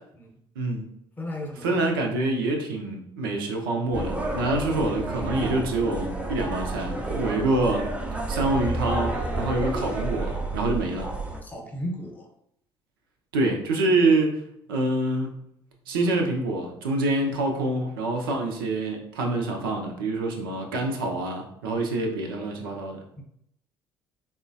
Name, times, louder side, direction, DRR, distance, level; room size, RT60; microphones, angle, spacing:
voice 1, 0.6-0.9 1.6-7.9 8.3-11.1 13.3-14.4 14.7-15.3 15.9-23.0, right 2 dB, 70° right, 2 dB, 0.5 m, -26 dB
voice 2, 1.2-1.9 11.4-12.3 23.2-23.3, left 1 dB, 15° left, 0 dB, 0.9 m, -35 dB
sound 1, 3.9-11.4, right 2 dB, 10° right, 0.5 m, -30 dB
3.6 x 2.0 x 2.6 m, 0.72 s
figure-of-eight pair, 50°, 12 cm